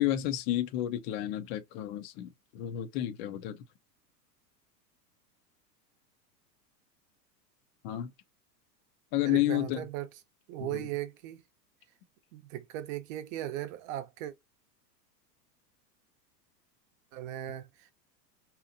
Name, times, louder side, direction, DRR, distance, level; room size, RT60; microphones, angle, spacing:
voice 1, 0.0-3.6 7.8-8.1 9.1-9.8 10.6-10.9, left 13 dB, 40° left, 0.5 m, -31 dB
voice 2, 9.3-10.1 10.5-11.4 12.3-14.3 17.1-17.9, right 13 dB, 50° right, 0.8 m, -37 dB
4.7 x 2.9 x 2.6 m
hypercardioid pair, 105°, 50 cm